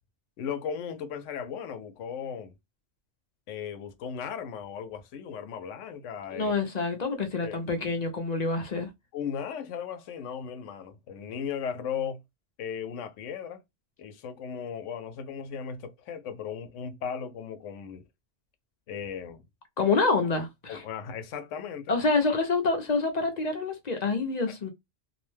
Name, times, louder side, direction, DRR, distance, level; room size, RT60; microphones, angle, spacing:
voice 1, 0.4-2.5 3.5-6.6 7.4-7.6 9.1-12.2 12.6-13.6 14.0-18.0 18.9-19.4 20.7-21.9, left 7 dB, 80° left, 0.9 m, -36 dB
voice 2, 6.3-8.9 19.8-20.8 21.9-24.7, left 3 dB, 45° left, 0.5 m, -27 dB
2.6 x 2.1 x 3.2 m
omnidirectional pair, 1.2 m